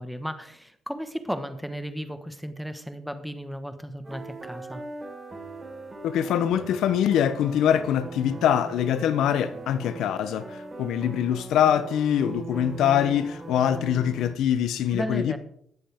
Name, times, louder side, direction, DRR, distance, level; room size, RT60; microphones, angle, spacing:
voice 1, 0.0-4.8 14.9-15.4, equal, ahead, 1.3 m, -34 dB
sound 1, 4.0-14.4, right 3 dB, 25° right, 3.9 m, -40 dB
voice 2, 6.0-15.4, left 9 dB, 80° left, 0.6 m, -24 dB
20.0 x 7.6 x 3.5 m
cardioid pair, 90°, 0 cm